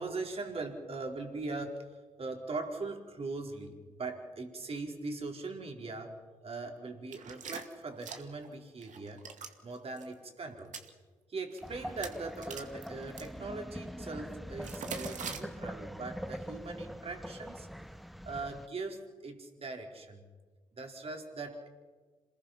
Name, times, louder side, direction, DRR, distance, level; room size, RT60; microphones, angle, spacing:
voice 1, 0.0-9.2 9.6-10.7 11.3-17.7 18.2-20.2 20.7-21.7, right 3 dB, 45° right, 2 dB, 4.4 m, -40 dB
sound 1, 7.1-8.5 8.8-9.5 9.9-10.0 10.6-10.9 11.5-11.7 12.0-13.3 14.6-15.4, right 6 dB, 65° right, 2.3 m, -42 dB
sound 2, 11.6-18.7, equal, ahead, 0.8 m, -43 dB
27.5 x 20.5 x 5.9 m, 1.4 s
supercardioid pair, 55°, 13 cm